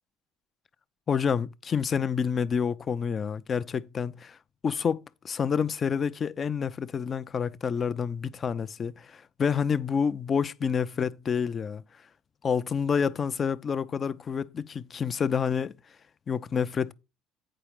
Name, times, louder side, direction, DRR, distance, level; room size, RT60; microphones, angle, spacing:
voice 1, 1.1-4.4 4.6-11.8 12.4-15.7 16.3-16.9, left 6 dB, 40° left, 0.6 m, -28 dB
8.9 x 5.0 x 4.8 m
hypercardioid pair, 60°, 0 cm